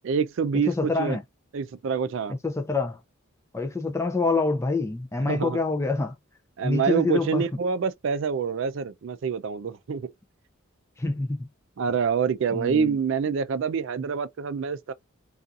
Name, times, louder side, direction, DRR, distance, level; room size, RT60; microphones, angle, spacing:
voice 1, 0.0-1.2 1.5-2.4 5.3-5.6 6.6-10.1 11.8-14.9, right 6 dB, 60° right, 0.3 m, -26 dB
voice 2, 0.7-1.2 2.3-3.0 3.5-6.1 6.6-7.4 11.0-11.5 12.5-13.0, left 3 dB, 15° left, 0.3 m, -26 dB
2.6 x 2.4 x 2.3 m
head